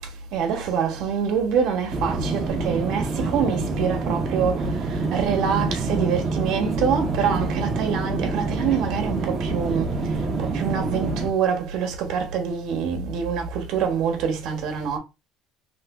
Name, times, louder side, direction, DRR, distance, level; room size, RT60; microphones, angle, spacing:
voice 1, 0.3-9.9 10.4-15.0, right 7 dB, 55° right, 1.0 m, -25 dB
sound 1, 1.9-11.3, right 3 dB, 25° right, 0.6 m, -26 dB
3.2 x 3.1 x 2.3 m
cardioid pair, 165°, 0 cm